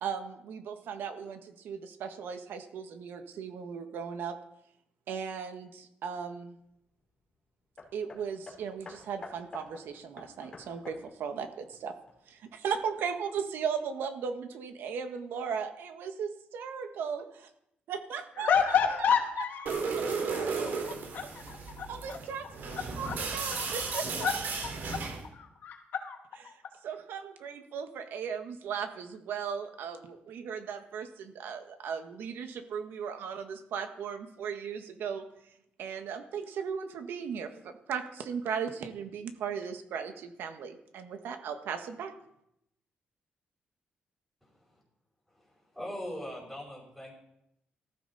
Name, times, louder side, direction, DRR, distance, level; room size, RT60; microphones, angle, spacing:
voice 1, 0.0-4.4 5.1-6.6 7.9-11.9 12.3-17.5 17.9-19.1 21.9-24.3 26.8-35.2 35.8-42.1, right 7 dB, 80° right, 7 dB, 1.7 m, -37 dB
Hammer, 7.8-12.5 13.3-13.4, left 4 dB, 25° left, 3.7 m, -50 dB
voice 2, 18.4-22.2 23.0-23.1 23.5-24.3 24.9-25.0 25.3-26.2 26.4-26.5, left 7 dB, 65° left, 3 dB, 2.6 m, -31 dB
sound 1, 19.7-25.2, right 4 dB, 65° right, 3.4 m, -34 dB
voice 3, 45.7-47.1, equal, ahead, -6 dB, 5.1 m, -40 dB
19.0 x 14.5 x 4.3 m, 0.79 s
cardioid pair, 140°, 4 cm